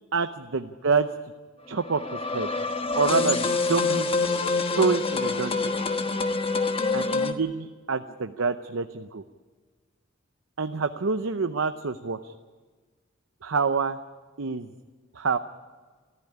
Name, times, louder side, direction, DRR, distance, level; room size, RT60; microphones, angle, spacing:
voice 1, 0.5-1.1 1.7-2.5 3.0-4.1 4.7-5.7 6.9-9.2 10.6-12.3 13.4-14.0 14.4-14.7 15.1-15.4, right 4 dB, 70° right, 9 dB, 0.7 m, -27 dB
sound 1, 1.7-7.3, left 3 dB, 30° left, 1.3 m, -26 dB
27.0 x 14.5 x 9.9 m, 1.5 s
head